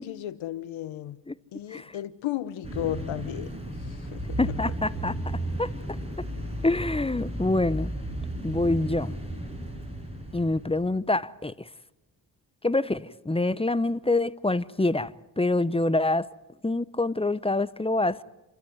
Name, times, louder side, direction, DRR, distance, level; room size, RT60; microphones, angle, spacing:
voice 1, 0.0-1.2 1.5-4.4, left 13 dB, 85° left, 15 dB, 1.1 m, -34 dB
sound 1, 2.6-10.9, right 1 dB, 15° right, 5.8 m, -34 dB
voice 2, 4.4-5.7 6.6-7.9 8.4-9.2 10.3-11.7 12.6-16.3 16.6-18.2, left 2 dB, 10° left, 17 dB, 0.8 m, -26 dB
28.5 x 13.0 x 9.5 m, 1.0 s
supercardioid pair, 50°, 46 cm